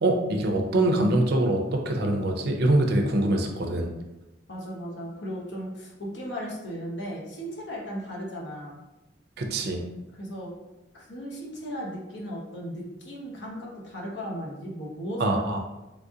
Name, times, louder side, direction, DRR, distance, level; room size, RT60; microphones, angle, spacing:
voice 1, 0.0-3.9 9.4-9.8 15.2-15.6, right 1 dB, 60° right, 3 dB, 0.5 m, -24 dB
voice 2, 4.5-8.8 10.1-10.5 10.9-15.6, equal, 70° left, -2 dB, 0.8 m, -36 dB
3.3 x 2.4 x 2.7 m, 0.98 s
head